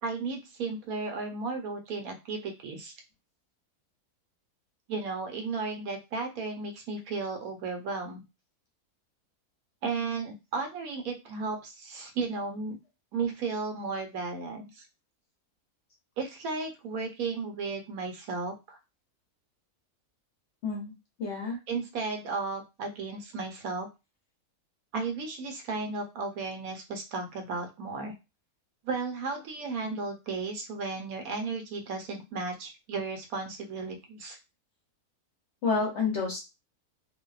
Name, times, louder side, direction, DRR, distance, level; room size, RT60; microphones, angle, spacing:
voice 1, 0.0-2.9 4.9-8.2 9.8-12.8 13.1-14.8 16.2-18.8 21.7-23.9 24.9-28.1 28.8-34.4, right 4 dB, 75° right, 4 dB, 1.0 m, -34 dB
voice 2, 21.2-21.6 35.6-36.5, left 4 dB, 60° left, 0 dB, 0.8 m, -29 dB
2.6 x 2.2 x 2.3 m, 0.25 s
omnidirectional pair, 1.6 m